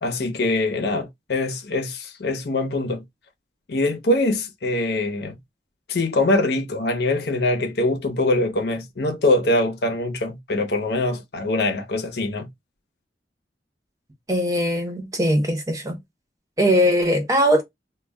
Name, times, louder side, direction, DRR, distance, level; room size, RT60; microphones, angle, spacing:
voice 1, 0.0-3.0 3.7-5.4 5.9-12.5, left 2 dB, 65° left, 0.7 m, -23 dB
voice 2, 14.3-16.0 16.6-17.6, equal, 20° right, 0.7 m, -20 dB
2.2 x 2.1 x 3.4 m
head